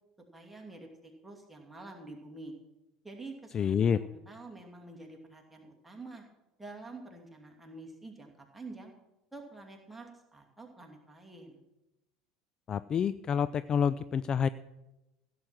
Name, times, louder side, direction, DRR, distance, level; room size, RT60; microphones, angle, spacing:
voice 1, 0.3-2.5 3.0-6.2 6.6-8.9 9.3-11.6, right 2 dB, 5° right, 0 dB, 2.7 m, -48 dB
voice 2, 3.5-4.0 12.7-14.5, left 7 dB, 30° left, 15 dB, 0.3 m, -28 dB
15.5 x 7.8 x 5.9 m, 0.97 s
figure-of-eight pair, 70°, 3 cm